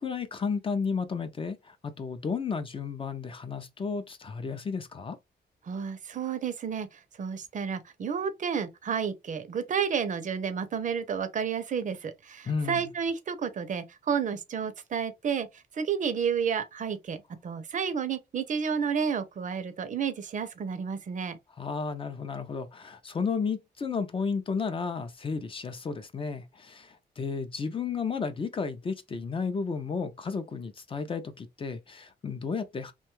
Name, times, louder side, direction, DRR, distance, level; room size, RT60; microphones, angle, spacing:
voice 1, 0.0-5.2 12.5-12.9 21.6-32.9, left 5 dB, 30° left, 0.4 m, -33 dB
voice 2, 5.7-15.5 15.7-21.4, right 7 dB, 50° right, 0.5 m, -31 dB
2.6 x 2.2 x 3.0 m
wide cardioid pair, 125°, 17 cm